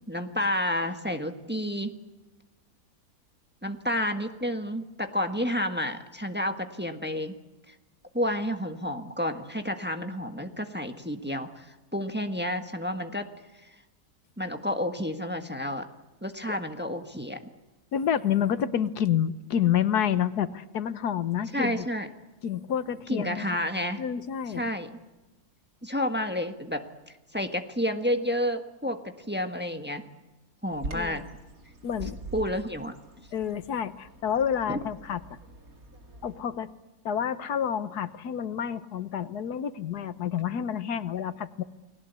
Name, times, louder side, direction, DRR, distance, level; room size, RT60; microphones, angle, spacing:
voice 1, 0.1-1.9 3.6-7.3 7.7-7.8 8.1-13.3 13.6-13.7 14.4-15.9 16.2-17.4 21.5-22.1 23.1-24.0 24.5-24.9 25.8-30.0 30.6-31.2 32.0-33.0 34.7-34.8, left 1 dB, 5° right, 6 dB, 1.4 m, -30 dB
voice 2, 17.9-21.9 22.4-23.6 24.0-24.6 30.9-31.2 31.8-32.2 33.3-35.2 36.2-36.7 37.0-41.6, left 9 dB, 90° left, 13 dB, 1.6 m, -29 dB
Bird vocalization bird call bird song, 30.7-36.4, right 2 dB, 65° right, 3.0 m, -43 dB
29.5 x 20.5 x 8.2 m, 1.1 s
omnidirectional pair, 1.6 m